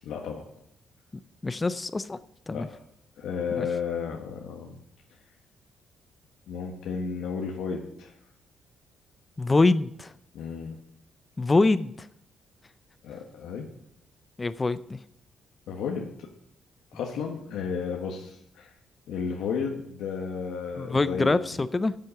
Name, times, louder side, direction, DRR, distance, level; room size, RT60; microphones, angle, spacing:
voice 1, 0.0-0.4 2.5-2.8 3.2-4.8 6.5-8.1 10.3-10.8 13.0-13.7 15.7-16.1 16.9-18.7 19.1-21.4, left 6 dB, 80° left, 1 dB, 1.4 m, -33 dB
voice 2, 1.4-2.2 2.5-2.7 3.6-3.7 9.4-10.1 11.4-12.1 14.4-15.0 20.8-22.0, left 3 dB, 25° left, 15 dB, 0.5 m, -24 dB
9.3 x 7.7 x 6.9 m, 0.75 s
cardioid pair, 90°, 0 cm